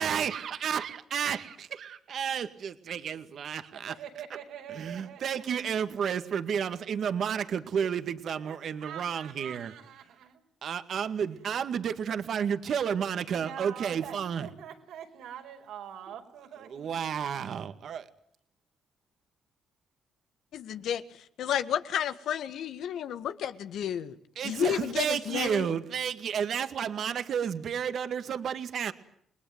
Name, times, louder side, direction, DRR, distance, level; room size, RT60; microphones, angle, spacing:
voice 1, 0.0-3.9 4.7-9.7 10.6-14.5 16.6-18.1 24.4-28.9, right 7 dB, 60° right, 9 dB, 2.0 m, -31 dB
voice 2, 3.7-5.4 7.8-7.9 8.4-10.4 13.3-16.9, right 9 dB, 85° right, 4 dB, 5.3 m, -44 dB
voice 3, 20.5-24.2 24.4-25.7, left 9 dB, 75° left, 11 dB, 1.7 m, -31 dB
30.0 x 20.5 x 9.4 m, 0.69 s
cardioid pair, 90°, 0 cm